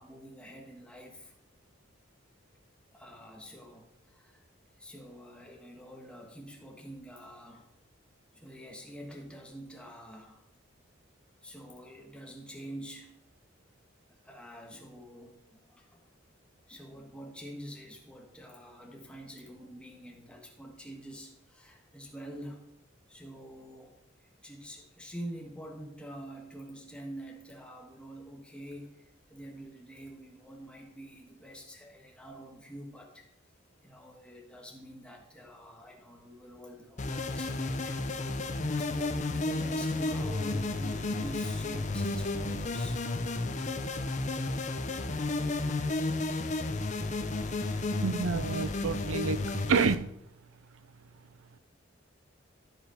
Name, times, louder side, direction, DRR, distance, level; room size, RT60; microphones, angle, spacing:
voice 1, 0.0-1.3 2.9-4.4 4.8-7.7 8.3-10.5 11.4-13.2 14.2-16.0 16.7-22.7 23.1-23.9 24.4-33.2 33.8-38.0 38.8-43.0, equal, 5° left, 0 dB, 1.5 m, -46 dB
sound 1, 37.0-49.9, left 2 dB, 35° left, 0.7 m, -32 dB
voice 2, 48.0-49.4 49.7-50.1, right 5 dB, 85° right, 15 dB, 0.5 m, -28 dB
13.5 x 5.1 x 5.0 m, 0.78 s
head